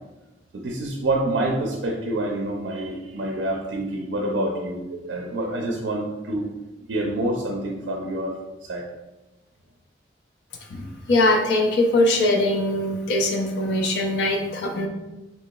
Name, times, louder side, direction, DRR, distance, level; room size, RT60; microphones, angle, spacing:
voice 1, 0.5-6.5 6.9-8.8, right 1 dB, 75° right, 0 dB, 0.4 m, -27 dB
voice 2, 10.7-14.9, left 1 dB, 65° left, 2 dB, 0.4 m, -22 dB
4.0 x 2.8 x 2.2 m, 1.1 s
head